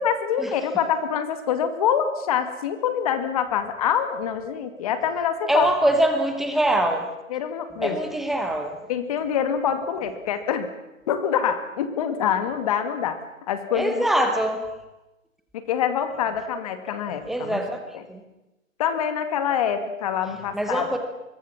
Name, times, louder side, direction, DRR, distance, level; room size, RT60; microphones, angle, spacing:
voice 1, 0.0-5.7 7.3-8.0 8.9-10.7 11.1-14.3 15.5-17.6 17.9-18.0 18.8-20.9, left 8 dB, 25° left, 9 dB, 2.2 m, -25 dB
voice 2, 5.5-7.1 7.8-8.8 13.7-14.7 17.3-17.8 18.1-18.2 20.5-21.0, right 1 dB, ahead, 5 dB, 1.0 m, -23 dB
25.5 x 22.5 x 7.4 m, 0.98 s
hypercardioid pair, 160°, 40 cm